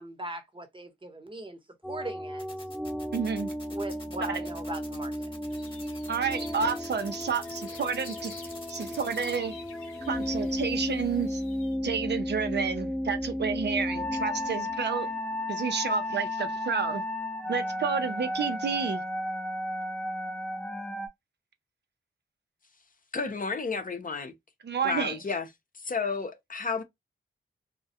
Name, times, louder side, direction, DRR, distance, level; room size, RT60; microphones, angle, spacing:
voice 1, 0.0-1.6 1.9-2.4 3.7-5.3, right 1 dB, 25° right, 0.9 m, -39 dB
sound 1, 1.8-21.1, left 1 dB, ahead, 0.5 m, -34 dB
sound 2, 2.4-9.4, left 2 dB, 25° left, 1.1 m, -47 dB
voice 2, 3.1-3.5 6.1-8.4 8.7-9.6 10.1-11.4 11.8-15.1 15.5-17.0 17.5-19.0 24.6-25.2, right 6 dB, 55° right, 0.5 m, -30 dB
sound 3, 5.5-11.8, left 4 dB, 90° left, 0.7 m, -51 dB
voice 3, 23.1-24.3 24.8-25.5 25.7-26.8, left 4 dB, 40° left, 0.6 m, -31 dB
2.3 x 2.1 x 2.7 m
supercardioid pair, 45°, 21 cm